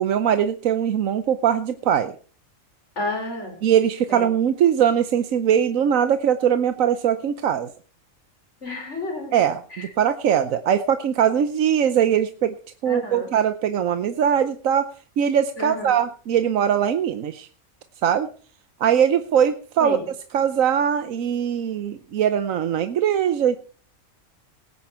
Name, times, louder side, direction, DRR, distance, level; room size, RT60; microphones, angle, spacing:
voice 1, 0.0-2.1 3.6-7.7 9.3-12.5 12.8-14.9 15.2-17.5 18.0-18.3 18.8-20.0 20.3-23.6, right 9 dB, 75° right, 10 dB, 1.2 m, -21 dB
voice 2, 3.0-3.6 4.1-4.3 8.6-9.4 9.7-9.9 12.9-13.3 15.6-15.9 19.8-20.1, left 2 dB, 60° left, 2 dB, 5.2 m, -31 dB
18.5 x 9.7 x 4.3 m, 0.40 s
omnidirectional pair, 1.4 m